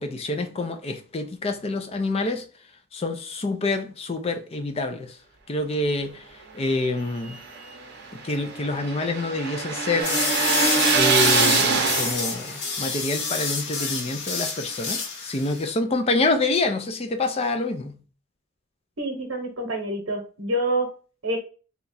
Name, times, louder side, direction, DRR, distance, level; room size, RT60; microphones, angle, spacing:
voice 1, 0.0-2.4 2.9-5.1 5.5-6.2 6.5-7.4 8.1-10.2 10.9-18.0, left 2 dB, 30° left, 0.4 m, -27 dB
sound 1, 7.0-12.5, right 4 dB, 55° right, 0.7 m, -24 dB
sound 2, 10.0-15.7, left 4 dB, 50° left, 0.8 m, -28 dB
voice 2, 19.0-20.9 21.2-21.4, right 1 dB, 80° right, 0.9 m, -27 dB
2.9 x 2.3 x 4.0 m
head